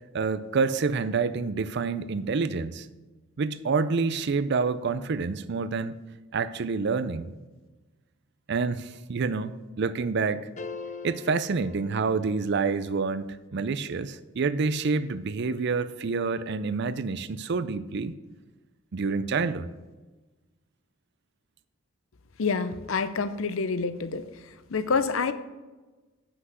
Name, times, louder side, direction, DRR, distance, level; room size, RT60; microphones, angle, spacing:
voice 1, 0.1-2.9 3.4-6.0 6.3-7.3 8.5-10.5 11.0-18.1 18.9-19.7, right 4 dB, 55° right, 14 dB, 0.5 m, -28 dB
sound 1, 10.6-12.8, left 4 dB, 35° left, 0.6 m, -41 dB
voice 2, 22.4-24.2 24.7-25.3, left 4 dB, 75° left, 12 dB, 0.6 m, -27 dB
8.0 x 5.9 x 6.1 m, 1.2 s
head